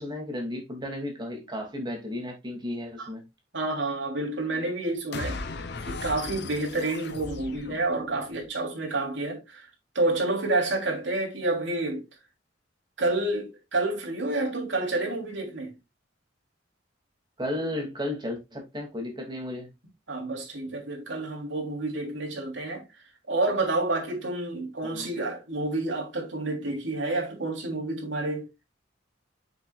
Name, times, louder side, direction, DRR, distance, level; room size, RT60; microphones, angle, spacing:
voice 1, 0.0-3.2 17.4-19.7 24.8-25.1, left 1 dB, 25° right, 2.5 m, -34 dB
voice 2, 3.5-5.4 5.8-9.7 9.9-12.0 13.0-15.7 20.1-22.8 23.3-28.5, right 2 dB, 75° right, 3.2 m, -29 dB
sound 1, 5.1-8.5, left 3 dB, 60° left, 0.8 m, -37 dB
8.0 x 6.6 x 2.4 m
head